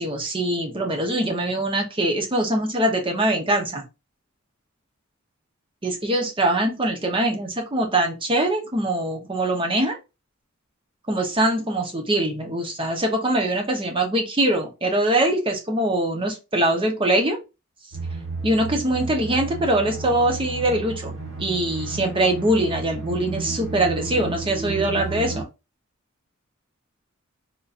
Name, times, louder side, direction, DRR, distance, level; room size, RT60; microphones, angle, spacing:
voice 1, 0.0-3.8 5.8-10.0 11.1-17.4 18.4-21.1 21.4-25.4, right 1 dB, 25° right, 2 dB, 0.8 m, -23 dB
sound 1, 17.9-25.4, right 3 dB, 65° right, 1.0 m, -32 dB
3.6 x 2.7 x 2.4 m, 0.27 s
head